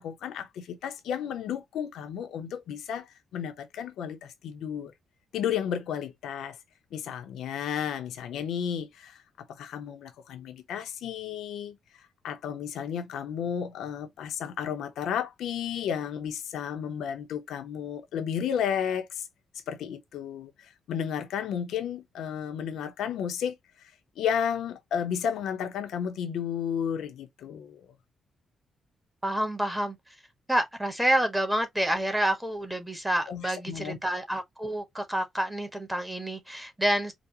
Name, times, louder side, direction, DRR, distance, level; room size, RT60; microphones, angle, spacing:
voice 1, 0.0-3.1 3.3-4.9 5.3-6.6 6.9-11.8 12.2-19.2 19.7-23.9 24.2-27.9 33.3-34.0, left 8 dB, 85° left, 0.9 m, -33 dB
voice 2, 29.2-30.0 30.5-37.1, right 1 dB, 5° right, 1.4 m, -28 dB
5.0 x 2.3 x 2.8 m
cardioid pair, 95°, 0 cm